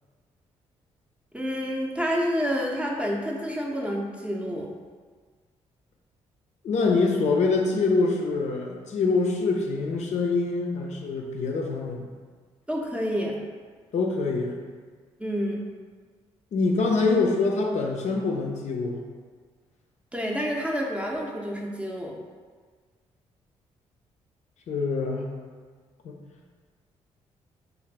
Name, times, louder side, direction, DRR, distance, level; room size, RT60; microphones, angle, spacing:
voice 1, 1.3-4.7 12.7-13.4 15.2-15.6 20.1-22.2, equal, 10° right, -1 dB, 0.5 m, -28 dB
voice 2, 6.6-12.0 13.9-14.6 16.5-19.0 24.7-25.3 26.0-26.2, left 3 dB, 60° left, 0 dB, 0.4 m, -25 dB
2.4 x 2.4 x 3.2 m, 1.5 s
hypercardioid pair, 50°, 13 cm